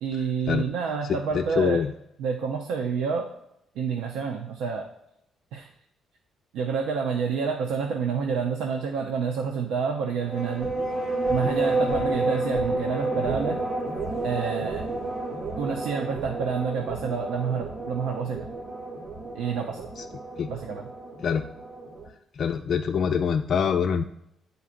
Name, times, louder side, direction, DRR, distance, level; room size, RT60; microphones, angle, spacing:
voice 1, 0.0-1.8 2.2-3.3 3.8-4.9 5.5-5.7 6.5-10.7 11.3-13.6 14.2-14.9 15.6-18.5 19.3-19.9 20.5-20.9, right 6 dB, 85° right, 2 dB, 0.5 m, -28 dB
voice 2, 1.3-1.9 20.0-20.1 20.4-20.5 21.2-21.5 22.4-24.0, left 7 dB, 60° left, 4 dB, 0.3 m, -24 dB
sound 1, 10.2-22.1, right 2 dB, 50° right, 1.4 m, -30 dB
9.5 x 4.0 x 2.5 m, 0.80 s
supercardioid pair, 65°, 0 cm